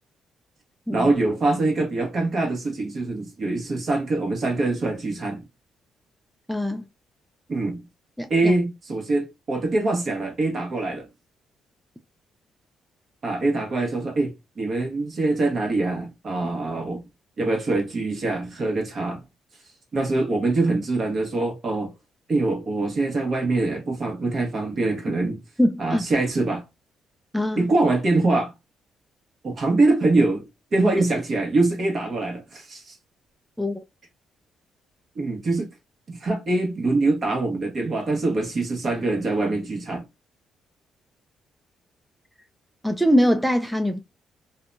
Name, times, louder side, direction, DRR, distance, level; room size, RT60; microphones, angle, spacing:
voice 1, 0.9-5.4 7.5-7.8 8.3-11.1 13.2-17.0 17.4-19.2 19.9-21.9 22.3-25.4 25.8-26.6 27.6-28.5 29.4-32.9 35.1-35.7 36.1-40.0, right 2 dB, 50° right, 1.1 m, -24 dB
voice 2, 6.5-6.8 8.2-8.5 25.6-26.0 27.3-27.7 33.6-33.8 42.8-44.0, equal, ahead, 0.3 m, -22 dB
2.7 x 2.2 x 2.4 m
cardioid pair, 90°, 0 cm